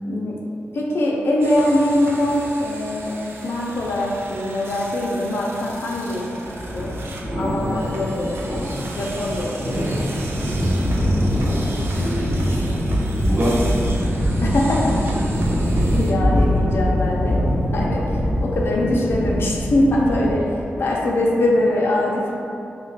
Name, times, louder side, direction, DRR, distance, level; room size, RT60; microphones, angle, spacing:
voice 1, 0.0-0.4 0.7-6.3 6.7-6.9 7.4-10.0 14.4-14.9 15.8-17.4 17.7-20.5 20.8-22.3, left 1 dB, 70° left, -3 dB, 0.4 m, -22 dB
sound 1, 1.4-16.1, right 2 dB, 75° right, 0.4 m, -37 dB
sound 2, 6.4-20.3, equal, ahead, 0.7 m, -23 dB
voice 2, 12.0-12.5 13.2-13.6 13.9-14.4 15.1-15.2, equal, 40° right, -7 dB, 0.9 m, -26 dB
3.0 x 2.1 x 4.0 m, 2.6 s
cardioid pair, 80°, 4 cm